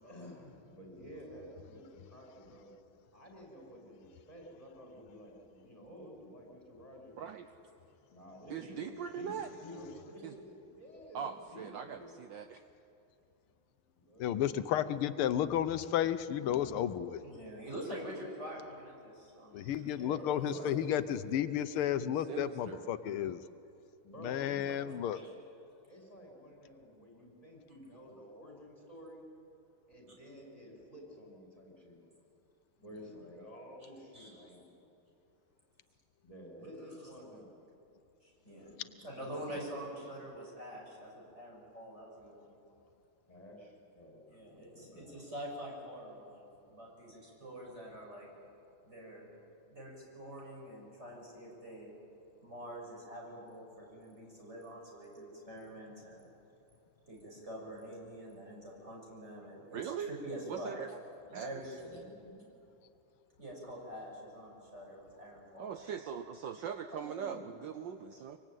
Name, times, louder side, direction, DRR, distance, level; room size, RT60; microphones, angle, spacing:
voice 1, 0.0-2.7 3.1-7.3 7.5-7.7 8.1-10.4 10.7-12.1 13.9-14.5 16.3-17.0 19.8-20.8 24.0-25.4 25.9-29.3 29.9-32.0 32.8-34.7 36.2-37.5 38.8-40.0 43.3-45.2 61.7-62.4 66.9-67.5, equal, 15° left, 0 dB, 5.5 m, -51 dB
voice 2, 8.5-9.5 10.2-10.3 11.1-12.6 22.0-23.3 59.7-60.1 60.5-61.0 61.3-61.7 65.6-68.4, right 8 dB, 65° right, 8 dB, 1.4 m, -41 dB
voice 3, 14.2-17.2 19.5-23.4 24.2-25.2, left 10 dB, 85° left, 12 dB, 1.7 m, -32 dB
voice 4, 17.2-19.8 20.3-20.7 25.1-25.3 32.9-33.2 34.1-34.5 37.0-37.1 38.2-42.5 44.3-48.3 48.9-49.3 49.7-51.9 52.4-56.3 57.1-60.7 61.3-62.1 63.4-66.0, equal, 30° right, -3 dB, 7.2 m, -46 dB
24.5 x 24.5 x 9.2 m, 2.8 s
omnidirectional pair, 2.3 m